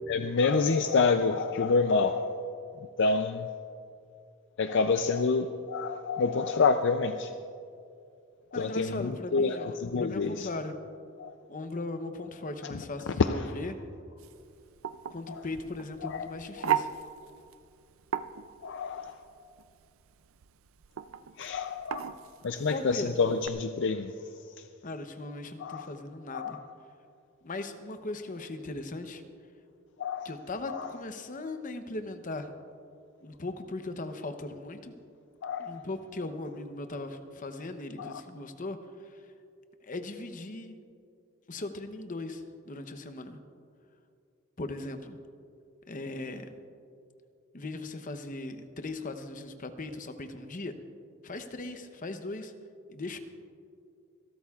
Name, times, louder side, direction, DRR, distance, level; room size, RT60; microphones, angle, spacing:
voice 1, 0.1-2.3 3.0-3.5 4.6-7.3 8.5-10.5 11.2-11.3 12.6-12.7 13.2-13.4 15.3-15.4 16.0-16.3 16.6-16.7 18.6-19.2 21.4-22.1 22.4-24.1 25.6-25.9 26.3-26.6 30.0-30.3 30.7-30.9 35.4-35.8 38.0-38.1, left 4 dB, 55° left, 8 dB, 0.4 m, -28 dB
voice 2, 8.5-10.8 11.5-13.8 15.1-16.9 22.7-23.1 24.8-26.6 27.4-29.2 30.2-32.5 33.2-34.9 35.6-38.8 39.1-39.3 39.8-40.8 41.5-43.4 44.6-45.2 45.9-46.6 47.5-50.7 51.2-52.5 52.9-53.2, left 2 dB, 40° left, 8 dB, 0.8 m, -38 dB
sound 1, 14.2-23.5, right 9 dB, 70° right, 0.4 m, -37 dB
27.0 x 12.5 x 2.4 m, 2.4 s
head